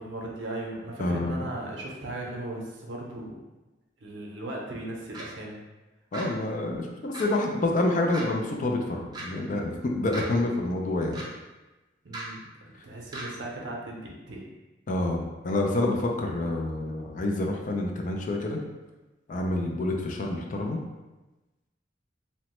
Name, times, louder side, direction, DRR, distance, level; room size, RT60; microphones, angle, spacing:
voice 1, 0.0-3.4 4.0-5.6 12.0-12.4 12.8-14.4, right 1 dB, 65° right, -1 dB, 0.6 m, -37 dB
voice 2, 1.0-1.5 6.1-11.2 14.9-18.6 19.3-20.8, left 2 dB, 45° left, 1 dB, 0.3 m, -28 dB
sound 1, 5.1-5.3 6.1-6.3 7.1-7.3 8.1-8.2 9.1-9.2 10.1-10.2 11.1-11.2 12.1-12.2 13.1-13.2, right 2 dB, 20° right, 0.4 m, -37 dB
2.9 x 2.1 x 3.0 m, 1.1 s
head